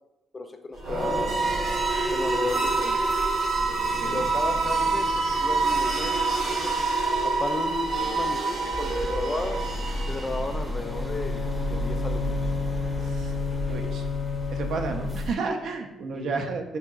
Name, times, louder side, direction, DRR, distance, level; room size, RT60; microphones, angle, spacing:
voice 1, 0.3-1.6 2.1-3.0 3.7-5.1 5.4-6.7 7.2-9.6 10.1-12.4 16.1-16.3, left 2 dB, 25° left, 6 dB, 0.5 m, -34 dB
sound 1, 0.8-10.7, right 3 dB, 85° right, 1.0 m, -26 dB
sound 2, 8.7-15.3, equal, 10° right, 0.7 m, -32 dB
Bowed string instrument, 10.7-15.6, left 7 dB, 80° left, 0.6 m, -32 dB
voice 2, 13.0-13.3 13.7-14.1 14.5-16.8, right 4 dB, 70° right, 5 dB, 0.5 m, -31 dB
5.7 x 2.7 x 2.3 m, 0.95 s
cardioid pair, 90°, 0 cm